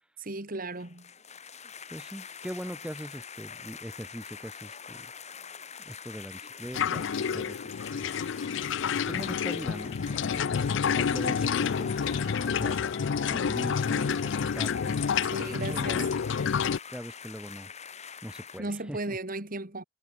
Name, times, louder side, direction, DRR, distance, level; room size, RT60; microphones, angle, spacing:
voice 1, 0.2-1.1 15.2-16.0 18.6-19.8, right 2 dB, 45° right, 2.8 m, -35 dB
sound 1, 0.7-18.6, left 6 dB, 35° left, 4.5 m, -44 dB
voice 2, 1.9-5.1 5.8-8.2 9.1-10.6 10.9-12.8 13.3-15.0 15.4-16.1 16.9-17.7 18.2-19.2, equal, 5° right, 2.9 m, -41 dB
sound 2, 6.7-16.8, left 6 dB, 65° left, 0.4 m, -29 dB
head